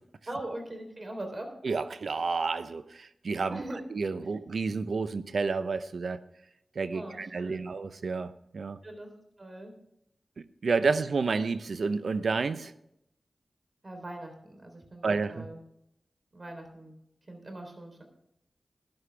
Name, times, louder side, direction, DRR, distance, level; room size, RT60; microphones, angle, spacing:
voice 1, 0.3-1.5 3.5-3.8 6.9-7.7 8.8-9.1 9.4-9.7 13.8-15.6 16.3-17.0 17.3-18.0, right 1 dB, 45° right, 4 dB, 3.6 m, -41 dB
voice 2, 1.6-3.6 3.9-6.2 6.8-8.8 10.4-12.7 15.0-15.5, right 4 dB, 80° right, 13 dB, 0.7 m, -30 dB
13.0 x 11.5 x 3.4 m, 0.79 s
cardioid pair, 50°, 0 cm